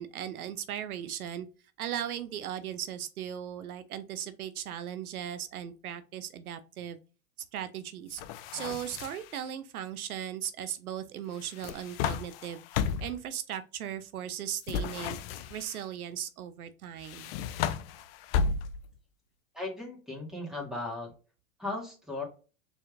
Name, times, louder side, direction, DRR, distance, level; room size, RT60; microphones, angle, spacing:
voice 1, 0.0-1.5 1.8-7.0 7.5-8.2 8.5-12.6 13.0-15.2 15.5-17.3, right 10 dB, 85° right, 11 dB, 0.6 m, -37 dB
sound 1, 8.1-9.4 11.4-13.2 14.6-15.8 17.0-19.0, left 6 dB, 45° left, 0.4 m, -33 dB
voice 2, 19.5-21.1 21.6-22.2, left 2 dB, ahead, -2 dB, 1.7 m, -36 dB
4.2 x 3.4 x 2.5 m, 0.34 s
hypercardioid pair, 105°, 43 cm